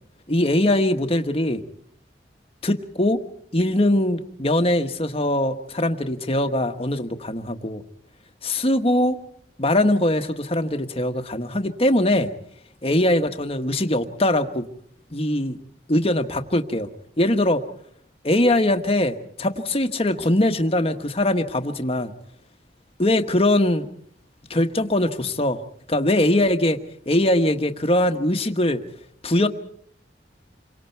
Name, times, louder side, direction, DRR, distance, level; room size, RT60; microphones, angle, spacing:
voice 1, 0.3-1.6 2.6-3.2 3.5-7.8 8.4-9.2 9.6-12.3 12.8-14.6 15.1-15.6 15.9-16.9 17.2-17.6 18.2-22.1 23.0-23.9 24.5-25.6 25.9-26.8 27.1-28.8 29.2-29.5, left 1 dB, 30° left, 7 dB, 1.3 m, -21 dB
28.0 x 23.5 x 4.6 m, 0.63 s
head